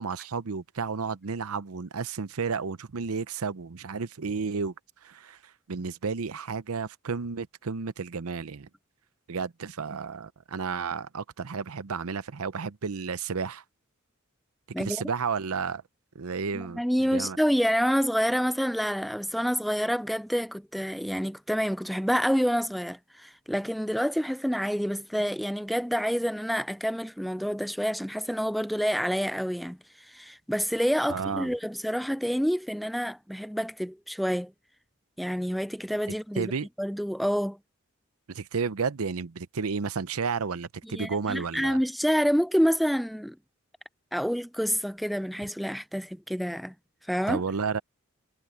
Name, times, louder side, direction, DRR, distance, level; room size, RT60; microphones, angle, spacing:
voice 1, 0.0-4.7 5.0-5.4 5.7-8.7 9.3-13.6 14.8-15.8 16.1-17.4 31.1-31.5 36.4-36.7 38.3-41.8 47.3-47.8, right 5 dB, 85° right, 0.7 m, -32 dB
voice 2, 16.5-34.5 35.2-36.5 36.8-37.6 40.8-43.4 44.1-46.7 47.1-47.4, equal, ahead, 0.3 m, -28 dB
head